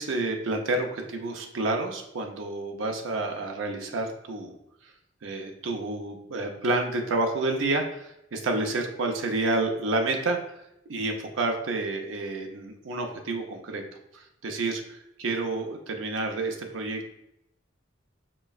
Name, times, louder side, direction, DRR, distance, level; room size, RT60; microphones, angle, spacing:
voice 1, 0.0-4.5 5.2-10.4 10.9-13.8 14.1-17.1, right 2 dB, 75° right, 3 dB, 0.6 m, -29 dB
5.5 x 3.0 x 2.4 m, 0.81 s
head